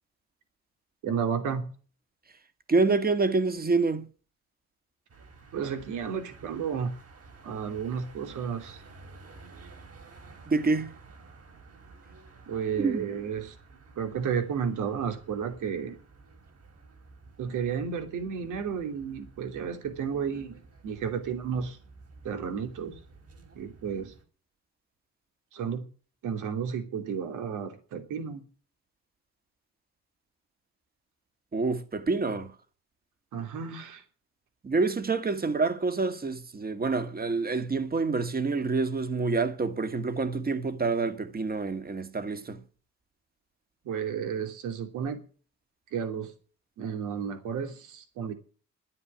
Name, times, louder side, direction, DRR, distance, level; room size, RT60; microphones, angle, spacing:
voice 1, 1.0-1.6 5.5-6.9 7.4-8.8 12.5-13.6 14.0-16.0 17.4-20.6 20.8-21.8 22.2-22.9 23.5-24.1 25.5-25.8 26.2-28.4 33.3-34.0 43.8-45.2 45.9-46.3 46.8-48.3, right 7 dB, 80° right, 3.0 m, -32 dB
voice 2, 2.7-4.1 10.5-10.9 12.8-13.1 31.5-32.6 34.6-42.6, right 3 dB, 30° right, 2.0 m, -27 dB
sound 1, 5.1-24.2, right 3 dB, 50° right, 4.6 m, -52 dB
11.5 x 9.7 x 9.5 m
cardioid pair, 90°, 30 cm